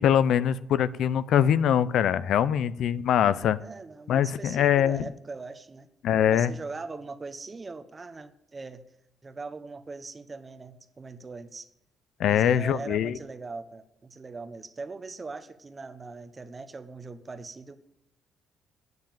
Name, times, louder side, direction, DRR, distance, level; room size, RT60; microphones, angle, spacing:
voice 1, 0.0-3.6 4.1-5.1 6.0-6.5 12.2-13.2, left 9 dB, 75° left, 15 dB, 0.5 m, -23 dB
voice 2, 3.6-5.9 6.3-8.8 9.2-11.7 12.2-17.7, right 3 dB, 30° right, 11 dB, 1.1 m, -41 dB
9.5 x 7.4 x 9.0 m, 0.82 s
cardioid pair, 90°, 0 cm